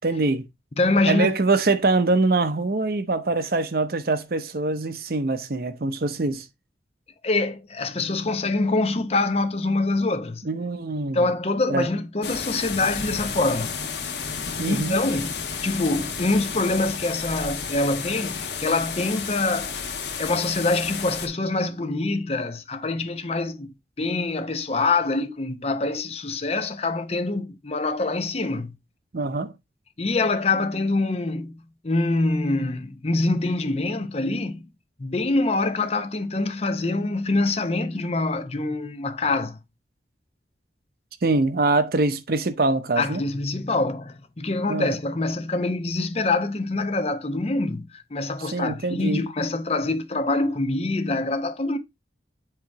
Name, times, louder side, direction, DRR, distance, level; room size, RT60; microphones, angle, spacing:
voice 1, 0.0-0.4 1.1-6.5 10.4-11.3 11.7-11.9 14.6-15.0 29.1-29.5 41.2-43.2 44.7-44.9 48.5-49.2, right 3 dB, 55° right, 0.7 m, -23 dB
voice 2, 0.8-1.3 7.2-10.4 11.1-13.7 14.7-19.7 20.2-28.8 30.0-34.6 35.0-39.6 43.0-51.8, left 2 dB, 35° left, 0.7 m, -25 dB
sound 1, 12.2-21.3, left 6 dB, 75° left, 1.1 m, -32 dB
7.7 x 3.0 x 4.7 m
head